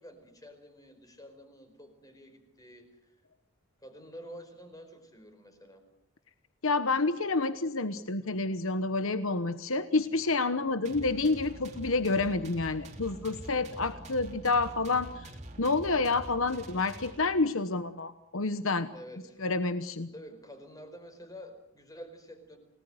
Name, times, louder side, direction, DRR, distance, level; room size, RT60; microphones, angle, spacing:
voice 1, 0.0-3.1 3.8-5.8 18.9-19.4 20.1-22.6, equal, 15° left, 7 dB, 4.8 m, -49 dB
voice 2, 6.6-15.3 15.6-18.9 19.4-20.1, left 3 dB, 75° left, 11 dB, 1.1 m, -29 dB
sound 1, 10.8-17.6, right 1 dB, 30° right, 3.2 m, -45 dB
29.5 x 19.0 x 8.1 m, 0.80 s
head